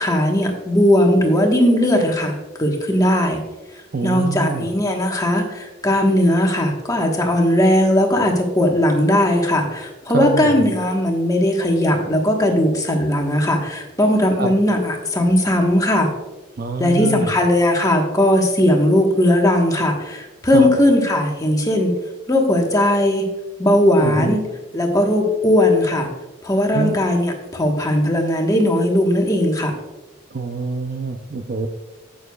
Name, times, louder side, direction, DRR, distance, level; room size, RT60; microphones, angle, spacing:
voice 1, 0.0-3.4 4.0-16.1 16.8-21.9 22.3-23.3 23.6-24.4 24.7-26.1 26.4-29.7, left 1 dB, 15° left, 1 dB, 1.3 m, -18 dB
voice 2, 3.9-4.7 10.1-10.6 14.4-14.6 16.6-17.4 20.5-20.7 24.0-24.3 26.7-26.9 30.3-31.7, right 4 dB, 45° right, 7 dB, 0.5 m, -25 dB
11.0 x 8.8 x 2.3 m, 1.1 s
head